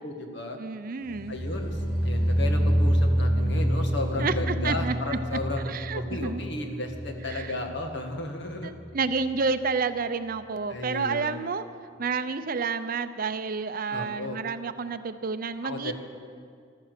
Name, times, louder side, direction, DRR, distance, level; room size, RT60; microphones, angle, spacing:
voice 1, 0.0-0.6 1.3-5.6 5.9-8.7 10.7-11.5 13.9-14.4 15.6-15.9, left 2 dB, 60° left, 4 dB, 1.8 m, -34 dB
voice 2, 0.6-1.4 4.2-5.2 5.7-6.4 7.3-7.5 8.6-11.6 12.0-15.9, right 4 dB, 45° right, 11 dB, 0.6 m, -30 dB
sound 1, 1.1-8.2 8.4-8.9 9.2-9.3, equal, 35° left, 3.5 m, -27 dB
14.5 x 13.0 x 6.6 m, 2.2 s
head